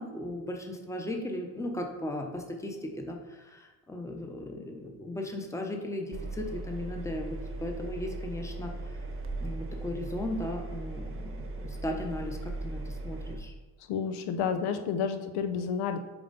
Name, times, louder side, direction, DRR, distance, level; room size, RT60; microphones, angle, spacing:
voice 1, 0.0-9.0 9.4-13.5, left 1 dB, 10° left, 2 dB, 0.8 m, -37 dB
Engine, 6.1-13.4, right 2 dB, 35° right, 0.9 m, -38 dB
voice 2, 13.9-16.0, left 6 dB, 80° left, 8 dB, 0.8 m, -30 dB
7.0 x 4.3 x 4.1 m, 1.2 s
cardioid pair, 130°, 38 cm